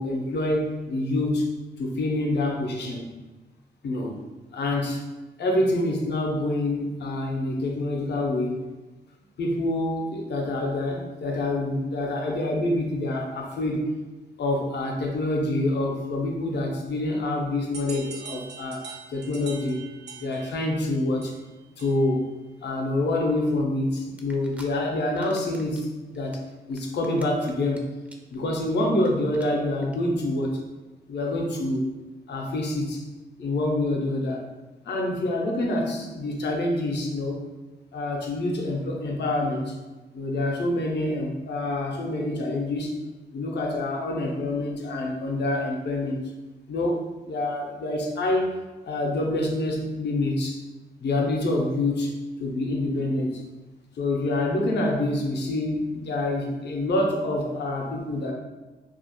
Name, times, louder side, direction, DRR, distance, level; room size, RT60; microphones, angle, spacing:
voice 1, 0.0-1.5 1.8-3.1 3.8-4.1 4.5-5.0 5.4-8.5 9.4-13.9 14.4-18.8 19.1-19.8 20.2-21.3 21.8-22.3 22.6-26.4 26.7-27.9 28.3-30.6 31.1-31.8 32.3-33.0 33.4-34.4 34.8-37.4 37.9-39.7 40.1-43.0 43.3-46.2 46.7-48.5 48.8-50.6 51.0-52.1 52.4-53.4 54.0-58.3, left 1 dB, 70° left, 0 dB, 0.5 m, -26 dB
sound 1, 17.7-22.2, right 5 dB, 70° right, 0.4 m, -43 dB
sound 2, 24.2-24.7 25.0-25.8 26.1-27.8 28.1-28.4 28.6-28.7 29.0-29.1 29.3-29.5 29.8-30.0, right 1 dB, 5° right, 0.4 m, -48 dB
2.4 x 2.0 x 2.8 m, 1.2 s
cardioid pair, 60°, 18 cm